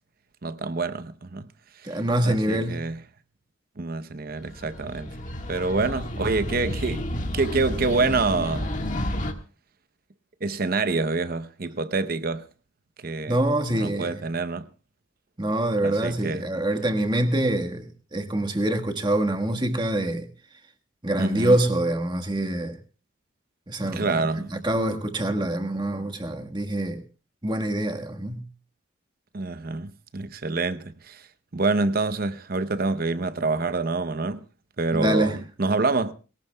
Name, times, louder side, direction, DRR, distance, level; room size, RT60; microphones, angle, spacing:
voice 1, 0.4-1.5 2.2-3.0 3.8-5.1 5.5-7.1 7.3-8.7 10.4-12.4 13.0-13.4 13.7-14.7 15.8-16.4 21.2-21.6 23.9-24.5 29.3-31.2 31.5-34.4 34.8-36.1, right 3 dB, 50° right, 0.8 m, -26 dB
voice 2, 1.8-2.9 13.3-14.2 15.4-20.3 21.0-22.8 23.7-27.0 27.4-28.4 34.9-35.4, right 1 dB, 25° right, 1.5 m, -25 dB
sound 1, 4.3-9.3, left 1 dB, 40° left, 1.6 m, -31 dB
22.5 x 17.5 x 2.3 m
head